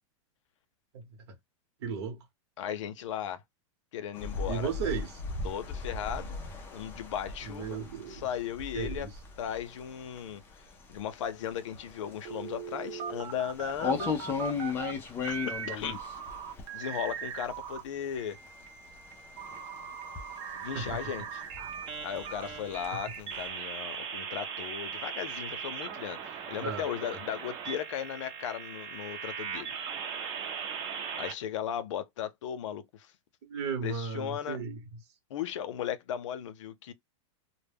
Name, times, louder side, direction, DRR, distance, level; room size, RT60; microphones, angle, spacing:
voice 1, 1.8-2.2 4.5-5.2 7.4-8.2 8.7-9.1 20.7-21.0 26.6-27.2 33.5-34.8, right 6 dB, 60° right, 0.9 m, -35 dB
voice 2, 2.6-3.4 3.9-4.7 5.4-6.4 6.7-7.8 8.1-9.1 9.4-14.1 15.2-15.4 15.7-16.0 16.7-18.4 20.5-21.4 22.0-29.7 31.2-33.1 33.8-34.6 35.3-36.9, left 9 dB, 75° left, 0.6 m, -36 dB
sound 1, 4.1-17.7 18.1-23.5, left 5 dB, 15° left, 0.4 m, -38 dB
sound 2, 12.2-14.9 15.2-17.8 18.2-31.3, right 7 dB, 30° right, 0.7 m, -39 dB
2.1 x 2.1 x 3.3 m
supercardioid pair, 165°, 16 cm